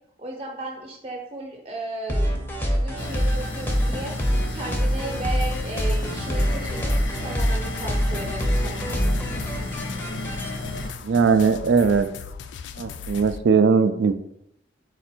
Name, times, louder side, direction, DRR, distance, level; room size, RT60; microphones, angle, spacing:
voice 1, 0.2-4.1 4.5-6.9 7.2-8.9, right 2 dB, 30° right, 1 dB, 0.7 m, -35 dB
sound 1, 2.1-10.5, equal, 10° left, 0.5 m, -25 dB
sound 2, 3.0-10.9, left 2 dB, 85° left, 0.8 m, -33 dB
sound 3, 5.4-13.4, left 6 dB, 65° left, 0.3 m, -38 dB
voice 2, 11.0-12.1 12.8-14.1, right 5 dB, 75° right, 10 dB, 0.4 m, -19 dB
4.4 x 2.5 x 4.3 m, 0.78 s
head